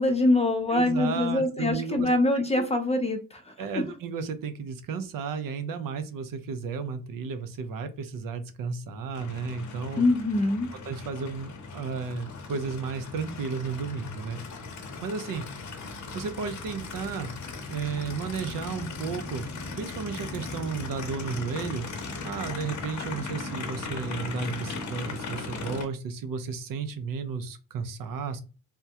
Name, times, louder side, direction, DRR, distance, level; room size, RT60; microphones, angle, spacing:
voice 1, 0.0-3.9 10.0-10.7, left 2 dB, 20° left, 6 dB, 0.4 m, -24 dB
voice 2, 0.7-2.1 2.4-2.7 3.6-10.0 10.8-14.4 15.0-15.5 16.1-17.3 17.7-19.5 19.7-21.9 22.2-28.4, right 5 dB, 85° right, 9 dB, 0.6 m, -33 dB
Aircraft, 9.1-25.9, left 3 dB, 60° left, 0.7 m, -38 dB
3.5 x 2.2 x 2.7 m, 0.33 s
wide cardioid pair, 160°, 33 cm